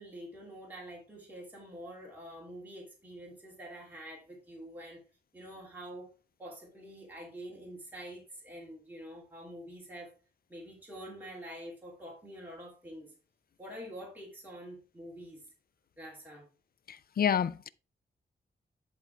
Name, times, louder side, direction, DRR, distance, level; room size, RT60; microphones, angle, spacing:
voice 1, 0.0-5.0 5.3-6.1 6.4-10.1 10.5-13.1 13.6-15.4 16.0-16.5, equal, 10° right, 2.6 m, -46 dB
voice 2, 16.9-17.7, left 8 dB, 60° left, 0.5 m, -29 dB
10.5 x 3.6 x 4.5 m
wide cardioid pair, 110°, 17 cm